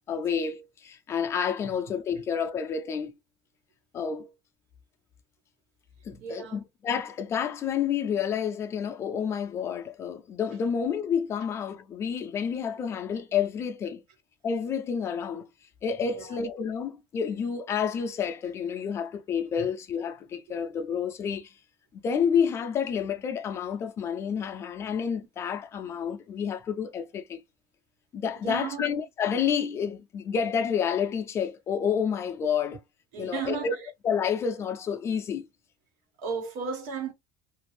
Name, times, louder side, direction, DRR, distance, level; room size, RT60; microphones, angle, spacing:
voice 1, 0.1-3.1 3.9-4.3 6.0-14.0 14.4-15.5 15.8-21.5 22.0-27.4 28.1-32.8 33.2-33.8 34.0-35.5, left 7 dB, 25° left, 0.4 m, -29 dB
voice 2, 6.1-6.6 16.0-16.4 28.4-28.9 33.1-33.9 36.2-37.1, right 6 dB, 90° right, 1.4 m, -35 dB
2.8 x 2.5 x 3.1 m
cardioid pair, 180°, 11 cm